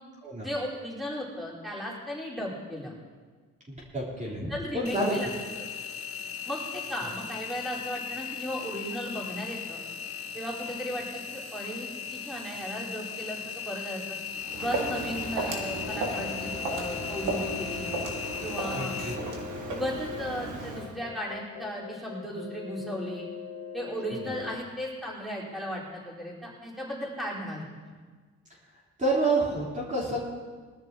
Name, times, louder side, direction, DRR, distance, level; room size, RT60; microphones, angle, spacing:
voice 1, 0.4-2.9 4.3-5.3 6.4-9.8 10.3-14.2 14.5-17.9 18.4-19.0 19.7-23.3 23.7-27.9, equal, ahead, -6 dB, 4.8 m, -36 dB
voice 2, 3.7-5.2 5.5-5.6 18.7-19.1 29.0-30.2, right 2 dB, 25° right, -6 dB, 4.1 m, -29 dB
Engine, 4.8-19.1, left 7 dB, 50° left, 1.8 m, -38 dB
Walk footsteps, 14.3-20.9, right 3 dB, 90° right, 2.3 m, -35 dB
sound 1, 15.8-24.6, left 8 dB, 90° left, 1.1 m, -42 dB
21.5 x 13.0 x 3.1 m, 1.5 s
cardioid pair, 90°, 30 cm